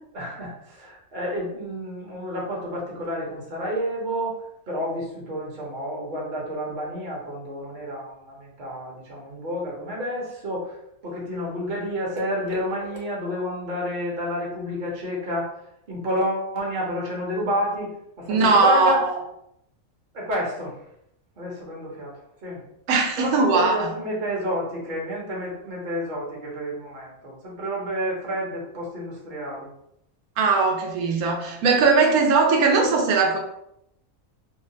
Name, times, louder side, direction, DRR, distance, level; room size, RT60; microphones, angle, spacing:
voice 1, 0.1-4.4 4.7-19.1 20.1-20.9 21.4-22.6 23.2-29.7, equal, 45° right, -4 dB, 0.7 m, -30 dB
voice 2, 18.3-19.0 22.9-23.9 30.4-33.4, right 4 dB, 90° right, 1 dB, 1.1 m, -19 dB
2.8 x 2.0 x 2.7 m, 0.77 s
omnidirectional pair, 1.5 m